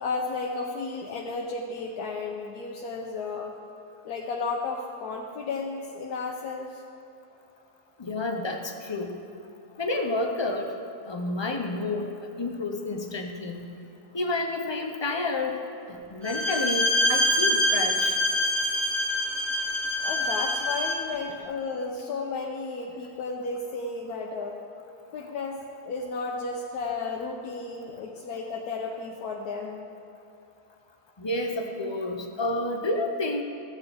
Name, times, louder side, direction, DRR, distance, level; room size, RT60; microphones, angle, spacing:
voice 1, 0.0-3.5 4.0-6.8 20.0-24.6 25.1-25.6 25.8-29.9, left 3 dB, 90° left, -1 dB, 1.3 m, -33 dB
voice 2, 8.0-9.2 9.8-10.7 11.1-13.7 14.1-15.6 15.9-18.2 31.2-33.4, left 2 dB, 45° left, 3 dB, 0.3 m, -30 dB
Bowed string instrument, 16.2-21.1, left 1 dB, 10° right, 1.0 m, -25 dB
14.0 x 8.2 x 3.5 m, 2.7 s
omnidirectional pair, 1.6 m